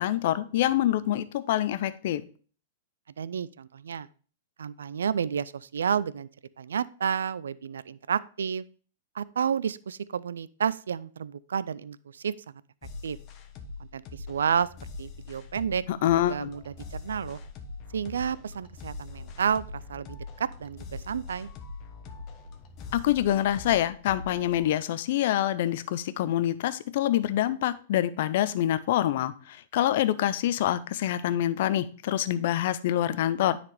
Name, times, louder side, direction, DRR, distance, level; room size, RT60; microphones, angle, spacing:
voice 1, 0.0-2.2 15.9-16.5 22.9-33.6, left 12 dB, 60° left, 14 dB, 0.5 m, -26 dB
voice 2, 3.2-4.1 4.6-6.3 6.6-8.6 9.1-12.3 13.0-13.2 13.8-14.7 15.0-15.8 16.3-17.4 17.9-21.5, right 7 dB, 80° right, 19 dB, 0.3 m, -30 dB
sound 1, 12.8-24.7, left 3 dB, 40° left, 1.1 m, -42 dB
9.7 x 4.1 x 3.3 m, 0.41 s
hypercardioid pair, 110°, 0 cm